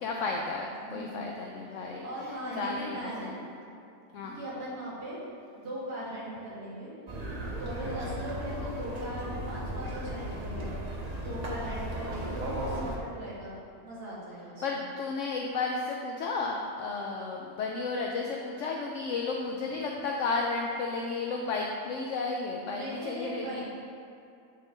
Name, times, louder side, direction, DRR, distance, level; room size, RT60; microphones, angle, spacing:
voice 1, 0.0-3.4 4.1-4.4 8.1-8.2 14.6-23.6, left 3 dB, 70° left, 0 dB, 0.7 m, -33 dB
voice 2, 0.8-1.2 1.7-3.3 4.3-5.2 5.5-6.9 7.6-10.7 11.2-14.8 22.7-23.6, equal, 85° right, -8 dB, 2.4 m, -39 dB
sound 1, 7.1-13.0, right 1 dB, 35° right, 0.7 m, -36 dB
9.0 x 3.8 x 3.7 m, 2.5 s
omnidirectional pair, 1.7 m